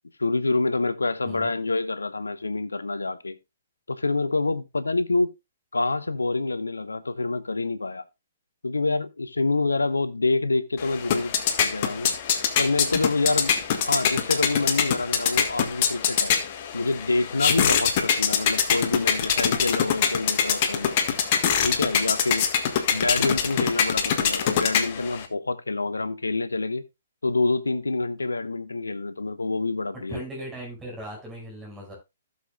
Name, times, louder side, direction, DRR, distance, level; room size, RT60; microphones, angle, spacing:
voice 1, 0.2-3.4 3.9-5.3 5.7-8.0 8.6-11.3 11.6-12.1 12.6-13.5 13.8-16.3 16.7-21.0 21.6-22.5 22.9-26.8 27.2-30.2, left 3 dB, 80° left, 1.0 m, -26 dB
sound 1, 10.8-25.2, left 8 dB, 40° left, 1.6 m, -24 dB
voice 2, 30.1-31.9, right 1 dB, 10° right, 5.6 m, -38 dB
16.0 x 6.9 x 2.3 m
figure-of-eight pair, 125°, 0 cm